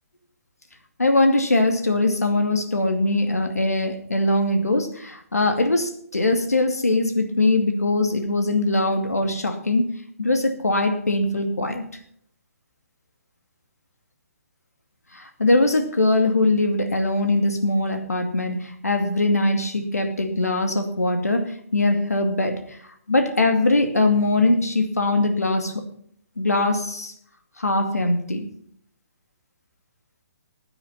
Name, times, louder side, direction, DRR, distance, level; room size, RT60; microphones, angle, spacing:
voice 1, 1.0-9.9 10.2-11.8 15.1-22.6 23.1-25.7 26.4-27.1 27.6-28.5, left 2 dB, 80° left, 6 dB, 2.4 m, -21 dB
15.5 x 9.7 x 4.3 m, 0.66 s
figure-of-eight pair, 135°, 8 cm